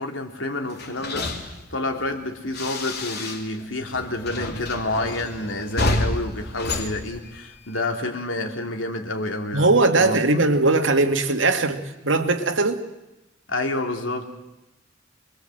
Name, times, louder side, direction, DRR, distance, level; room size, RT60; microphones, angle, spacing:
voice 1, 0.0-10.2 13.5-14.3, left 2 dB, 90° left, 4 dB, 3.1 m, -29 dB
sound 1, 0.7-3.7 3.9-7.8, left 2 dB, 60° left, 3.1 m, -29 dB
voice 2, 9.5-12.8, right 2 dB, 75° right, 6 dB, 2.1 m, -20 dB
27.0 x 21.5 x 7.8 m, 0.96 s
head